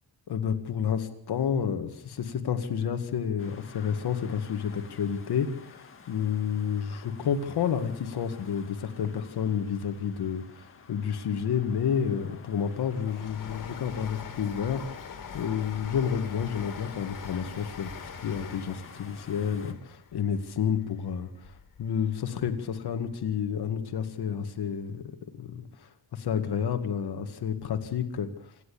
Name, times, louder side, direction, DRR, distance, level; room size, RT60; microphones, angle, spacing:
voice 1, 0.3-17.9 18.2-28.5, left 7 dB, 65° left, 6 dB, 2.0 m, -30 dB
sound 1, 3.4-19.7, left 5 dB, 30° left, 2.1 m, -51 dB
Train, 12.4-21.8 22.3-23.2 23.4-23.5, left 6 dB, 50° left, 2.9 m, -44 dB
27.5 x 11.0 x 8.7 m, 0.64 s
wide cardioid pair, 175°, 42 cm